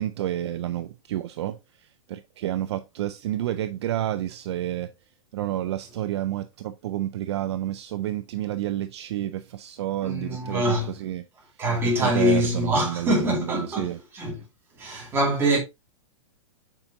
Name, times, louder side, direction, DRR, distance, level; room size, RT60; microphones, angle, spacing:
voice 1, 0.0-1.6 2.1-4.9 5.3-11.2 12.0-14.0, right 13 dB, 50° right, 0.4 m, -30 dB
voice 2, 10.0-10.9 11.6-14.4 14.8-15.6, equal, 15° right, 2.3 m, -24 dB
7.3 x 5.2 x 2.6 m
supercardioid pair, 165°, 18 cm